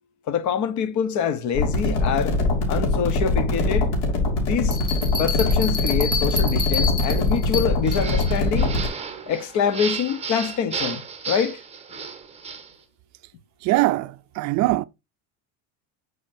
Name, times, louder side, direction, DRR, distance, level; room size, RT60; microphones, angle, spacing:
voice 1, 0.3-2.4 2.7-3.9 4.4-4.8 5.2-8.7 9.3-11.6, left 7 dB, 55° left, 1.1 m, -25 dB
sound 1, 1.5-8.9, left 2 dB, 75° left, 3.5 m, -22 dB
sound 2, 4.7-8.4, left 4 dB, 15° left, 2.0 m, -29 dB
sound 3, 7.8-12.7, right 6 dB, 15° right, 1.1 m, -33 dB
voice 2, 13.6-14.8, right 17 dB, 50° right, 0.4 m, -22 dB
7.3 x 6.3 x 2.7 m
cardioid pair, 140°, 36 cm